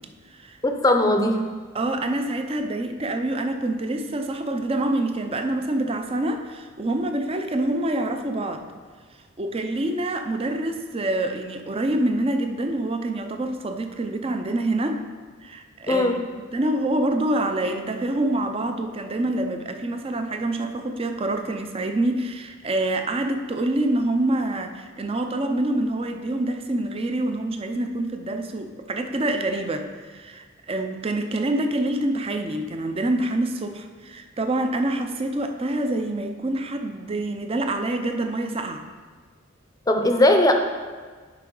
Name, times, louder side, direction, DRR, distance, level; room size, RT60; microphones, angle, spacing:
voice 1, 0.6-1.4 15.9-16.2 39.9-40.5, left 1 dB, 20° left, 4 dB, 0.6 m, -19 dB
voice 2, 1.7-8.7 9.4-15.0 15.4-16.2 16.5-38.8, right 1 dB, 30° right, 6 dB, 0.5 m, -26 dB
10.5 x 4.6 x 3.8 m, 1.5 s
head